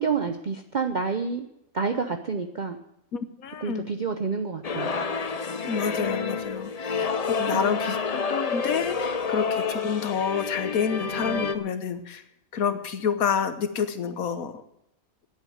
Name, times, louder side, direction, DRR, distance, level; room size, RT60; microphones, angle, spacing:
voice 1, 0.0-1.4 1.7-2.8 3.6-5.0 7.5-8.0, right 5 dB, 40° right, 6 dB, 0.7 m, -29 dB
voice 2, 3.1-3.9 5.6-12.2 12.5-14.6, left 7 dB, 80° left, 10 dB, 1.5 m, -29 dB
sound 1, 4.6-11.5, left 5 dB, 35° left, 0.7 m, -29 dB
10.0 x 8.7 x 9.3 m, 0.78 s
omnidirectional pair, 1.4 m